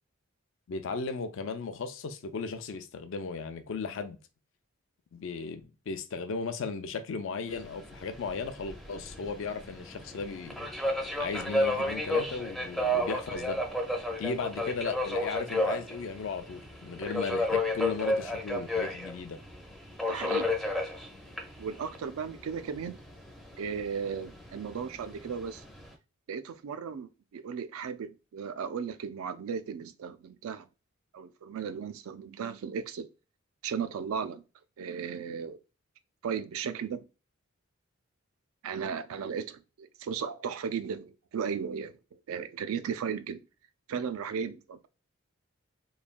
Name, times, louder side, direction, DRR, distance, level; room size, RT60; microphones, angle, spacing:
voice 1, 0.7-4.2 5.1-10.7 11.2-13.6 14.2-19.4, left 4 dB, 65° left, 0.4 m, -36 dB
Subway metro underground, 7.5-25.9, left 1 dB, ahead, 0.4 m, -33 dB
voice 2, 20.1-20.5 21.6-23.0 23.6-25.6 26.3-30.7 31.1-33.1 33.6-34.4 34.8-35.6 36.2-37.0 38.6-42.0 42.3-43.4 43.9-44.9, right 6 dB, 80° right, 0.3 m, -35 dB
3.1 x 2.2 x 2.4 m
head